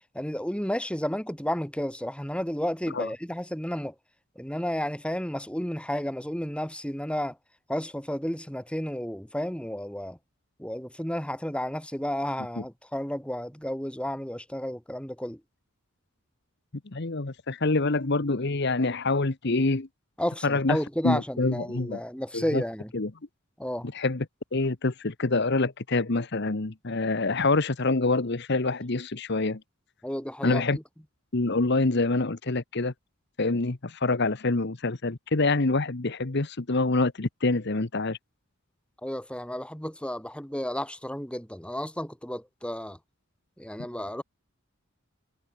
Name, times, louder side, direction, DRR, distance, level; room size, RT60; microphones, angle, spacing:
voice 1, 0.1-3.9 4.4-7.4 7.7-10.2 10.6-15.4 20.2-22.9 23.6-23.9 30.0-30.6 39.0-43.0 43.6-44.2, equal, 5° left, 3.3 m, -32 dB
voice 2, 16.9-19.9 20.4-20.8 21.0-22.0 22.3-22.6 22.9-23.1 23.8-24.3 24.5-29.6 30.4-30.8 31.3-32.9 33.4-38.2, left 3 dB, 55° left, 1.1 m, -26 dB
head